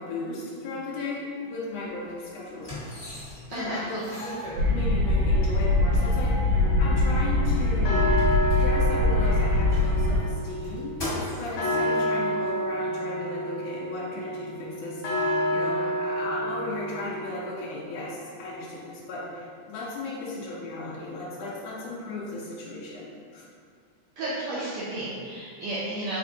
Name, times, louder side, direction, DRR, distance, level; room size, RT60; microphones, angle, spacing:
voice 1, 0.0-2.7 3.5-4.0 4.6-6.3 6.8-8.0 8.5-23.4, left 2 dB, 90° left, -6 dB, 1.4 m, -36 dB
sound 1, 1.9-2.0 2.5-3.6 3.9-5.2 6.0-6.1 6.3-6.4 6.9-9.0 9.4-11.6 12.5-12.6, left 1 dB, 40° left, 0.8 m, -39 dB
voice 2, 3.5-4.6 24.2-26.2, right 2 dB, 80° right, -7 dB, 1.6 m, -33 dB
sound 2, 4.6-10.2, left 2 dB, 65° right, 1.7 m, -22 dB
sound 3, 6.5-17.7, equal, 75° left, 1.6 m, -30 dB
4.8 x 3.5 x 2.7 m, 2.2 s
omnidirectional pair, 3.7 m